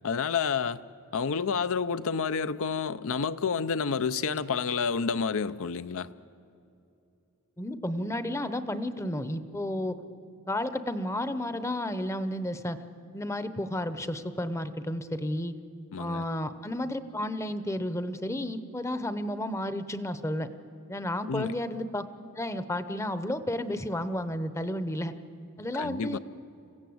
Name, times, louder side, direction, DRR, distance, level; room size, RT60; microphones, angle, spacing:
voice 1, 0.0-0.8 1.1-6.1 15.9-16.2 21.3-21.5 25.8-26.2, left 5 dB, 65° left, 0.6 m, -29 dB
voice 2, 7.6-10.0 10.5-12.8 13.1-15.5 16.0-20.5 20.9-22.0 22.4-25.1 25.6-26.2, left 1 dB, 15° left, 0.8 m, -32 dB
25.5 x 16.0 x 7.9 m
head